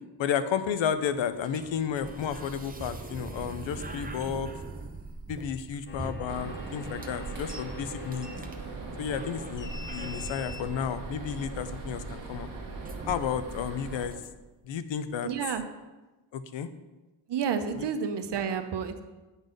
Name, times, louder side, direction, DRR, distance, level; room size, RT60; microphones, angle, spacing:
voice 1, 0.2-4.5 5.3-8.3 9.0-12.5 13.1-14.1 14.6-15.3 16.3-16.7 17.8-17.9, left 8 dB, 80° left, 12 dB, 0.7 m, -32 dB
sound 1, 0.7-14.7, right 3 dB, 20° right, 0.6 m, -43 dB
sound 2, 5.9-12.2, left 4 dB, 25° left, 0.6 m, -47 dB
sound 3, 6.3-14.1, right 4 dB, 45° right, 1.4 m, -40 dB
voice 2, 15.2-15.6 17.3-19.0, right 7 dB, 65° right, 8 dB, 0.8 m, -30 dB
9.0 x 4.0 x 5.2 m, 1.1 s
cardioid pair, 100°, 45 cm